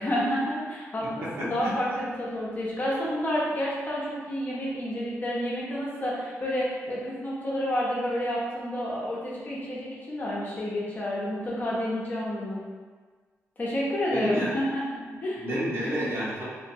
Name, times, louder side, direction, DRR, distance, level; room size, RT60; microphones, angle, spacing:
voice 1, 0.0-12.6 13.6-15.4, equal, 35° left, -6 dB, 0.7 m, -29 dB
voice 2, 1.0-1.7 14.1-14.5 15.4-16.4, equal, 50° right, -8 dB, 0.9 m, -30 dB
3.2 x 2.1 x 2.7 m, 1.4 s
wide cardioid pair, 125°, 6 cm